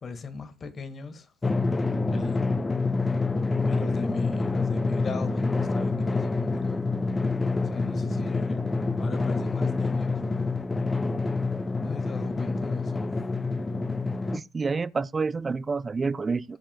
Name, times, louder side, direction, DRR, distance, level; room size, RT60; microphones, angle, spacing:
voice 1, 0.0-1.3 2.1-2.6 3.6-6.9 7.6-8.6 8.9-10.4 11.8-13.1, left 4 dB, 35° left, 1.7 m, -37 dB
Drum, 1.4-14.4, left 3 dB, 20° left, 0.6 m, -27 dB
voice 2, 14.3-16.6, right 4 dB, 30° right, 0.5 m, -28 dB
18.5 x 7.5 x 2.2 m
hypercardioid pair, 55°, 0 cm